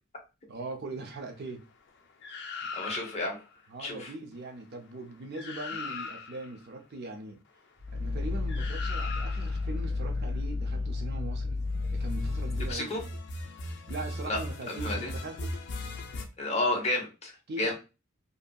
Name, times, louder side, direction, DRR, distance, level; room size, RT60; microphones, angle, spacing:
voice 1, 0.5-1.6 2.6-2.7 3.7-7.4 7.9-13.0 13.9-15.5 17.5-17.7, right 2 dB, 50° right, 0.5 m, -41 dB
sound 1, 2.2-3.4 5.0-5.1 5.3-6.5 8.5-9.6 12.0-16.2, left 2 dB, 55° left, 0.5 m, -39 dB
voice 2, 2.7-3.4 3.8-4.1 12.7-13.0 14.3-14.4 14.7-15.1 16.4-17.7, left 2 dB, 30° left, 0.8 m, -31 dB
Growling, 7.8-12.7, left 3 dB, 70° right, 1.1 m, -31 dB
2.7 x 2.6 x 2.2 m
head